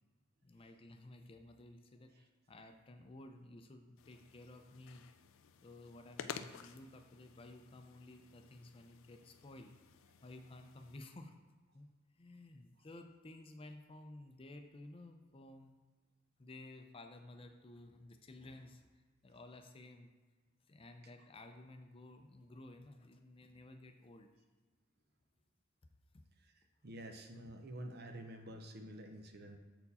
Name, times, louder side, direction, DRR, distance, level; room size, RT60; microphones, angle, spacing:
voice 1, 0.4-5.0 5.6-9.7 10.2-11.4 11.7-11.9 12.2-15.8 16.4-20.1 20.7-24.3 26.1-26.2 27.4-27.5, left 2 dB, 30° left, 5 dB, 0.5 m, -54 dB
sound 1, 4.0-11.0, left 7 dB, 90° left, 0.4 m, -53 dB
voice 2, 26.8-29.6, right 1 dB, 55° right, 5 dB, 0.7 m, -48 dB
6.8 x 4.5 x 4.2 m, 1.4 s
head